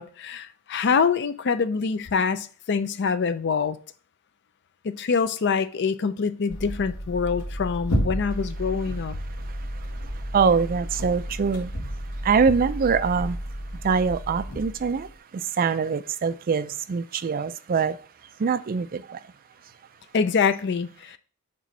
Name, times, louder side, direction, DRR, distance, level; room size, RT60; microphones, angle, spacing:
voice 1, 0.0-3.8 4.8-9.2 20.1-21.2, left 5 dB, 50° left, 0.4 m, -25 dB
sound 1, 6.5-15.2, equal, 85° left, 1.8 m, -32 dB
voice 2, 9.4-18.0 18.4-19.3, right 5 dB, 40° right, 0.3 m, -25 dB
7.5 x 3.1 x 5.4 m
head